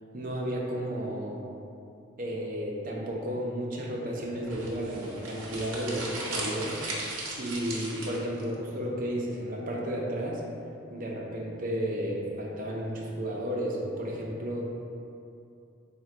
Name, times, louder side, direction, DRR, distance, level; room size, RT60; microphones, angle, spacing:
voice 1, 0.1-1.4 2.2-6.8 7.4-10.4 10.9-14.6, equal, 40° right, -2 dB, 0.5 m, -33 dB
sound 1, 4.5-8.4, right 2 dB, 85° right, 0.8 m, -37 dB
3.6 x 2.2 x 4.4 m, 2.6 s
head